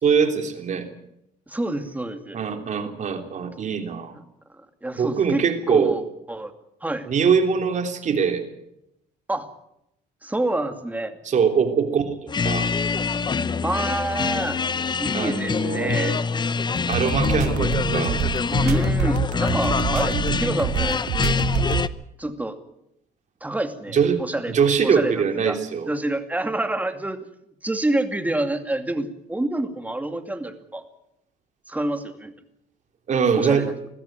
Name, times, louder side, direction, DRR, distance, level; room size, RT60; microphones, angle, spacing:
voice 1, 0.0-0.9 2.3-4.1 4.9-5.9 7.0-8.4 11.2-12.7 15.1-16.2 16.9-18.2 23.9-24.2 24.5-25.9 33.1-33.7, right 6 dB, 45° right, 6 dB, 3.3 m, -22 dB
voice 2, 1.5-2.4 4.8-6.5 6.8-7.1 9.3-9.5 10.2-11.2 13.6-14.6 15.0-16.2 18.6-20.1 20.4-21.0 22.2-22.6 23.4-24.5 24.8-25.6 25.9-27.2 27.6-30.8 31.7-32.3 33.4-33.7, right 1 dB, 10° right, 7 dB, 2.4 m, -27 dB
sound 1, 12.3-21.9, left 5 dB, 25° left, 0.8 m, -25 dB
sound 2, 16.8-21.9, right 9 dB, 85° right, 2.3 m, -26 dB
21.0 x 15.0 x 9.3 m, 0.82 s
cardioid pair, 110°, 17 cm